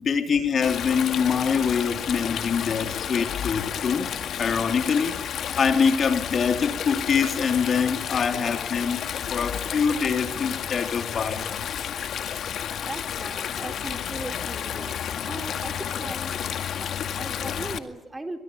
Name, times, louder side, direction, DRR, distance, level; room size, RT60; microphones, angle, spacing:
voice 1, 0.0-4.1 4.4-9.0 9.3-11.6, left 6 dB, 50° left, 3.4 m, -24 dB
Stream, 0.6-17.8, left 9 dB, 65° left, 1.9 m, -31 dB
voice 2, 12.8-16.4 16.7-18.4, right 2 dB, 15° right, 4.0 m, -38 dB
23.5 x 23.0 x 8.9 m
cardioid pair, 90°, 0 cm